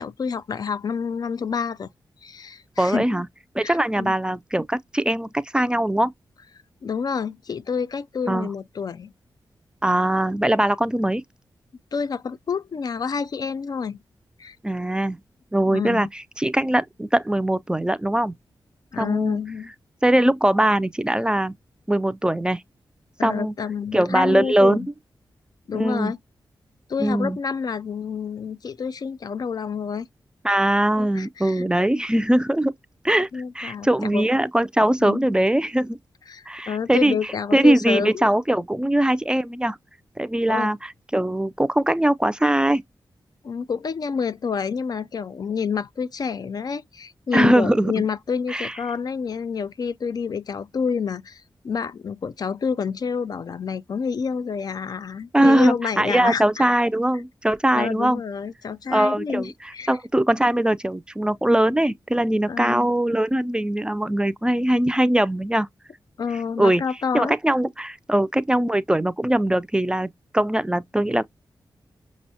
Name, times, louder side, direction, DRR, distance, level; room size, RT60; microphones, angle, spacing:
voice 1, 0.0-1.9 2.2-3.2 3.6-4.2 6.8-9.1 11.9-14.0 14.4-14.6 15.7-16.1 18.9-19.7 23.2-24.9 25.7-26.2 26.9-30.1 31.0-31.6 31.9-32.0 33.3-34.3 35.0-35.3 36.3-38.3 40.5-40.7 43.4-56.6 57.7-59.9 62.5-62.9 66.2-67.4, left 6 dB, 55° left, 0.4 m, -28 dB
voice 2, 2.8-3.3 3.5-6.1 8.3-8.5 9.8-11.2 14.6-15.2 15.5-18.3 19.0-19.4 20.0-21.5 21.9-22.6 23.2-23.5 23.9-24.8 25.7-26.1 27.0-27.4 30.4-32.7 33.0-33.3 33.5-36.0 36.5-39.8 40.2-42.8 47.3-47.9 48.5-48.8 55.3-58.2 58.9-65.7 66.6-66.8 67.1-71.2, right 1 dB, 10° right, 0.4 m, -21 dB
6.1 x 2.0 x 2.7 m
wide cardioid pair, 100°, 8 cm